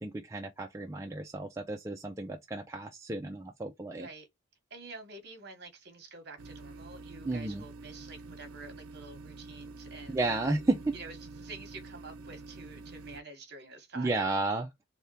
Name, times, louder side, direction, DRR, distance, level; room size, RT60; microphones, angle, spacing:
voice 1, 0.0-4.1 7.3-7.6 10.1-10.8 14.0-14.7, right 2 dB, 15° right, 0.3 m, -32 dB
voice 2, 3.9-4.3 4.7-10.6 10.9-14.2, right 3 dB, 50° right, 1.1 m, -48 dB
sound 1, 6.4-13.2, right 3 dB, 85° right, 0.5 m, -47 dB
3.5 x 2.1 x 2.7 m
head